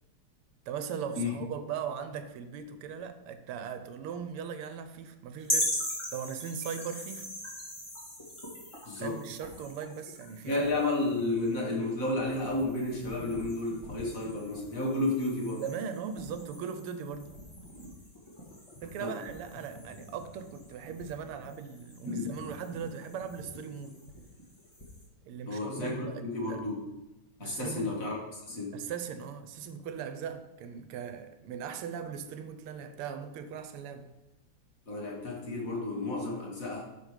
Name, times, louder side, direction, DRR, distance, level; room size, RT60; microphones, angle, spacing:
voice 1, 0.7-5.8 6.1-7.3 9.0-10.7 15.6-17.4 18.8-24.0 25.2-26.6 27.4-28.0 28.7-34.1, right 7 dB, 85° right, 1.7 m, -39 dB
sound 1, 5.4-25.0, equal, 15° left, 1.8 m, -41 dB
voice 2, 8.9-9.2 10.5-15.6 19.0-19.2 22.1-22.3 25.5-26.8 27.4-28.8 34.9-36.8, left 2 dB, 40° left, 2.0 m, -32 dB
10.0 x 4.9 x 5.0 m
omnidirectional pair, 2.4 m